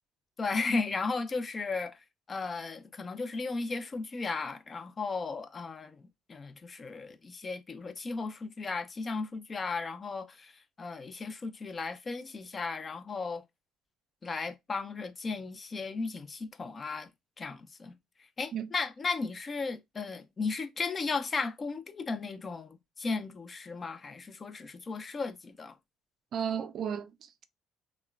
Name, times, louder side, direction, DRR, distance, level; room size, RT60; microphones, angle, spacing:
voice 1, 0.4-2.0 2.3-10.5 10.8-13.4 14.2-17.1 17.4-17.9 18.4-25.7, left 4 dB, 30° left, 0.4 m, -35 dB
voice 2, 26.3-27.4, right 8 dB, 55° right, 0.3 m, -34 dB
2.9 x 2.1 x 2.3 m
supercardioid pair, 85°, 0 cm